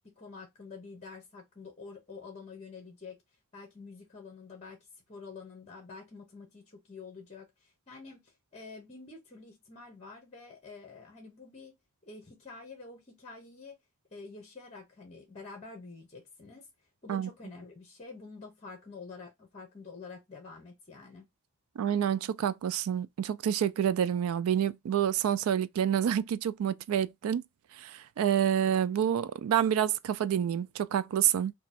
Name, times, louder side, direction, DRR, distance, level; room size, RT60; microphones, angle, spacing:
voice 1, 0.1-3.2 3.5-11.8 12.0-13.8 14.1-16.7 17.0-21.2, left 4 dB, 30° left, 0.9 m, -48 dB
voice 2, 21.8-27.4 27.8-31.5, right 9 dB, 70° right, 0.3 m, -28 dB
3.0 x 2.3 x 4.1 m
head